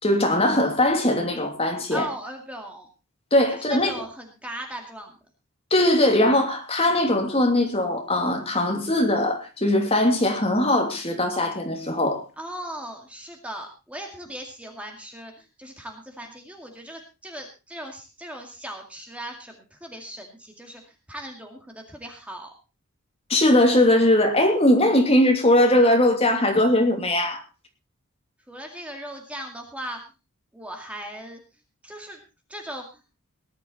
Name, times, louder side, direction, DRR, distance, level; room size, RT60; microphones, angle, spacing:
voice 1, 0.0-2.1 3.3-3.9 5.7-12.2 23.3-27.4, left 1 dB, 25° left, 3 dB, 2.9 m, -20 dB
voice 2, 1.9-2.9 3.5-5.1 12.4-22.5 28.5-30.0 30.5-31.4 31.8-32.2 32.5-33.0, equal, 5° right, 2 dB, 2.2 m, -38 dB
19.0 x 11.0 x 4.1 m, 0.31 s
head